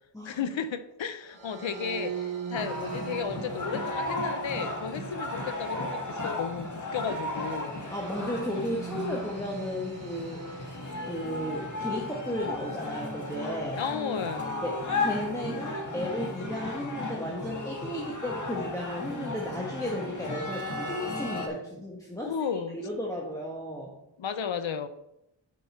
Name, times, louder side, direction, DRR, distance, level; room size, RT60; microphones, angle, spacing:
voice 1, 0.2-7.7 13.8-14.6 22.2-22.8 24.2-24.9, left 7 dB, 75° left, 11 dB, 0.8 m, -34 dB
sound 1, 1.2-12.6, right 7 dB, 80° right, 1.8 m, -42 dB
sound 2, 2.5-21.5, left 2 dB, 40° left, 1.8 m, -35 dB
voice 2, 7.9-10.6 11.1-13.8 14.6-22.3 22.7-23.9, equal, 5° left, -3 dB, 1.6 m, -34 dB
11.0 x 5.4 x 4.4 m, 0.84 s
cardioid pair, 65°, 46 cm